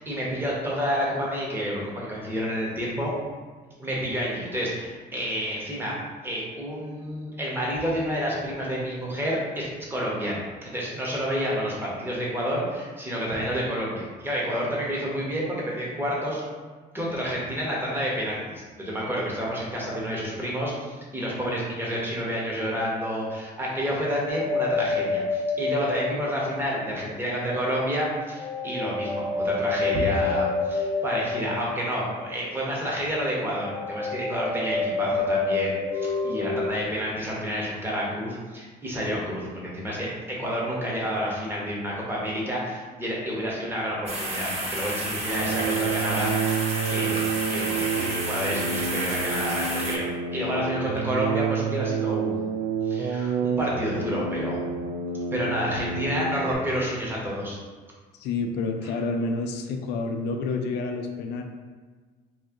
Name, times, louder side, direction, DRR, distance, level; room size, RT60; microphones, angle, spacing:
voice 1, 0.0-3.1 3.8-5.9 6.2-16.4 16.9-52.6 52.9-54.7 55.3-57.6, equal, 15° right, -5 dB, 1.1 m, -29 dB
sound 1, 24.3-27.0 28.3-32.3 33.6-36.7, left 3 dB, 20° left, 0.6 m, -28 dB
sound 2, 44.1-50.0, right 1 dB, 40° right, 0.8 m, -31 dB
sound 3, 45.3-56.5, right 6 dB, 80° right, 0.4 m, -29 dB
voice 2, 58.2-61.4, left 3 dB, 80° left, 4 dB, 0.5 m, -29 dB
3.1 x 2.7 x 3.7 m, 1.4 s
cardioid pair, 110°, 17 cm